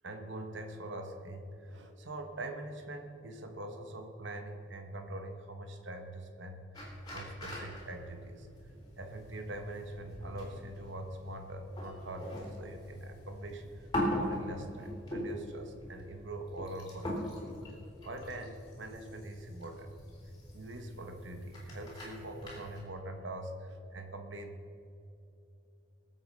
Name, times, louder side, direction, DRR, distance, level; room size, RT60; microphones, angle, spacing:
voice 1, 0.0-6.6 7.1-8.5 9.0-13.6 14.1-17.5 18.0-19.9 20.5-24.5, right 1 dB, 65° right, 5 dB, 1.4 m, -43 dB
sound 1, 6.7-22.8, left 1 dB, 20° left, 3.6 m, -41 dB
20.5 x 8.0 x 5.5 m, 2.8 s
head